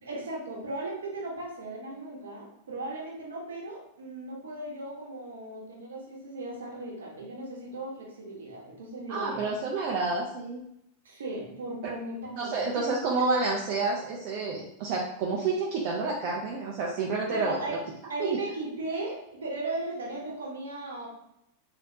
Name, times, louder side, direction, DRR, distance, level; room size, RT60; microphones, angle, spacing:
voice 1, 0.0-9.5 11.0-12.9 17.2-17.8 18.1-21.1, right 2 dB, 65° right, -1 dB, 0.9 m, -36 dB
voice 2, 9.1-10.6 12.4-17.6 18.2-18.4, right 3 dB, 45° right, -3 dB, 0.5 m, -29 dB
3.3 x 2.5 x 2.6 m, 0.78 s
figure-of-eight pair, 90°, 0 cm